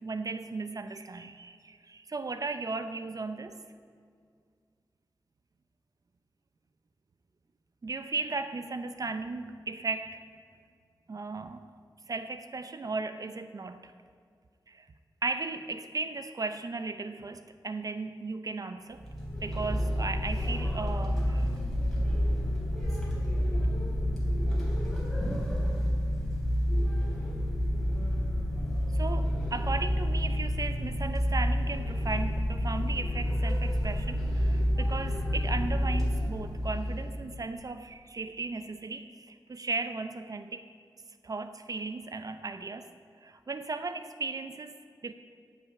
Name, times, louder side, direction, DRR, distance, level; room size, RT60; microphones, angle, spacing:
voice 1, 0.0-3.6 7.8-10.2 11.1-11.6 12.1-13.9 14.7-14.9 15.2-19.0 19.4-21.5 28.9-40.7 41.2-42.9 43.2-45.1, right 3 dB, 50° right, 10 dB, 0.7 m, -36 dB
sound 1, 18.9-37.2, equal, 5° left, 3.5 m, -29 dB
15.5 x 6.0 x 9.6 m, 2.2 s
wide cardioid pair, 90°, 8 cm